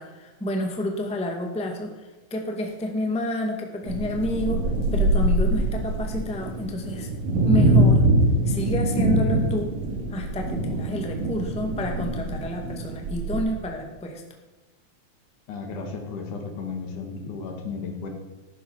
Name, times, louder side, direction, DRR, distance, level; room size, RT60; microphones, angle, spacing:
voice 1, 0.0-4.6 4.9-7.1 7.4-8.0 8.4-9.7 10.1-14.2, left 1 dB, 5° left, 2 dB, 1.0 m, -29 dB
sound 1, 3.9-13.4, right 1 dB, 65° right, 3.1 m, -23 dB
voice 2, 15.5-18.1, left 4 dB, 75° left, 3 dB, 3.4 m, -34 dB
13.0 x 10.5 x 4.5 m, 1.2 s
omnidirectional pair, 3.6 m